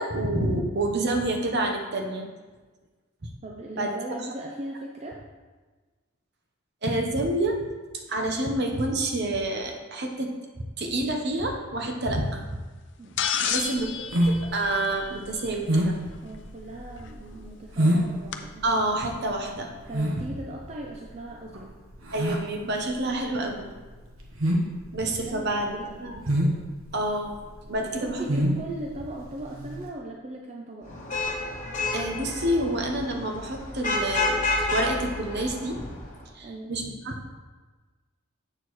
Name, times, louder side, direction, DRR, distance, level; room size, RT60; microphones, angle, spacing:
voice 1, 0.0-2.3 3.8-3.9 6.8-7.6 7.9-10.3 10.8-12.6 13.4-13.9 14.3-16.0 18.6-19.7 22.1-23.7 24.9-25.7 26.0-26.4 26.9-27.4 27.7-28.5 31.9-34.4 34.7-35.9 36.3-37.3, right 1 dB, 50° right, 3 dB, 0.9 m, -28 dB
voice 2, 3.4-5.2 13.0-13.9 16.2-18.6 19.9-21.7 25.1-26.2 27.8-31.0 36.4-36.7, right 1 dB, 30° right, -1 dB, 0.5 m, -38 dB
sound 1, 13.2-15.5 17.1-17.2 18.3-18.4, left 8 dB, 55° left, 0.5 m, -30 dB
sound 2, 13.5-29.9, equal, 75° right, 1.1 m, -28 dB
Vehicle horn car horn honking / Traffic noise roadway noise, 30.9-36.1, left 2 dB, 35° left, 1.2 m, -30 dB
7.6 x 6.6 x 3.1 m, 1.3 s
head